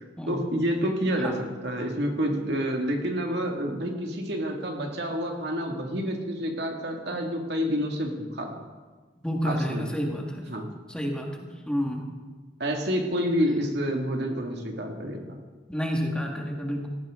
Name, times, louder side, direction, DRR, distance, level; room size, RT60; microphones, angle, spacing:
voice 1, 0.3-8.6 9.4-9.8 10.5-10.7 12.6-15.4, equal, 65° right, 2 dB, 2.0 m, -28 dB
voice 2, 9.2-10.5 10.9-12.0 15.7-16.9, equal, 5° left, 0 dB, 1.7 m, -30 dB
17.5 x 14.0 x 3.7 m, 1.4 s
head